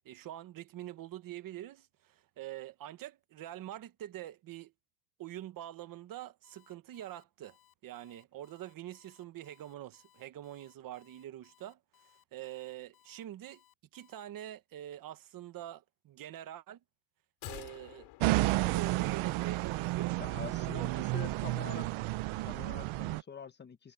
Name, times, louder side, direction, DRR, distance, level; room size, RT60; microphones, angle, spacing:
voice 1, 0.0-4.7 5.2-7.6 7.8-13.6 13.9-16.8 17.4-18.1 18.5-21.2 21.4-21.9, right 12 dB, 45° right, 1.2 m, -45 dB
Alarm, 6.4-14.2, left 13 dB, 45° left, 6.2 m, -66 dB
sound 1, 17.4-19.8 20.1-20.2, left 18 dB, 75° left, 4.8 m, -50 dB
sound 2, 18.2-23.2, right 19 dB, 80° right, 1.0 m, -32 dB
voice 2, 20.2-21.9 22.4-23.9, left 6 dB, 20° left, 1.2 m, -45 dB
cardioid pair, 175°, 48 cm